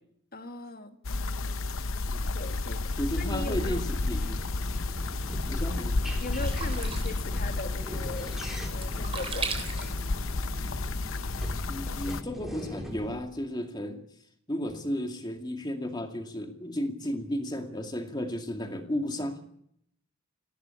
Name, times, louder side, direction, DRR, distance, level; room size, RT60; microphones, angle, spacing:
voice 1, 0.3-1.0 2.3-3.8 6.2-8.4 8.7-9.9, left 2 dB, 45° left, 7 dB, 1.9 m, -39 dB
stream bubbling (loop), 1.0-12.2, left 2 dB, 65° left, 0.9 m, -31 dB
voice 2, 2.1-2.4 3.0-4.4 5.5-6.0 11.7-14.0 14.5-19.4, equal, 20° left, 5 dB, 2.3 m, -33 dB
sound 1, 3.2-13.1, equal, ahead, 4.1 m, -41 dB
Sink (filling or washing), 4.6-10.7, right 5 dB, 25° right, 3.5 m, -41 dB
19.5 x 17.0 x 8.4 m, 0.70 s
head